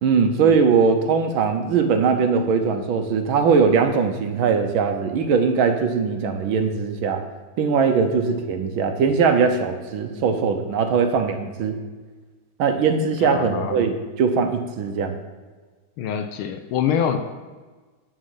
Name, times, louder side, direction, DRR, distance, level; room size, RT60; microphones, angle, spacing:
voice 1, 0.0-7.2 7.6-11.8 12.6-15.2, right 5 dB, 75° right, 6 dB, 1.6 m, -20 dB
voice 2, 13.2-13.9 16.0-17.3, left 8 dB, 80° left, 8 dB, 1.4 m, -25 dB
9.9 x 6.4 x 5.6 m, 1.4 s
omnidirectional pair, 2.3 m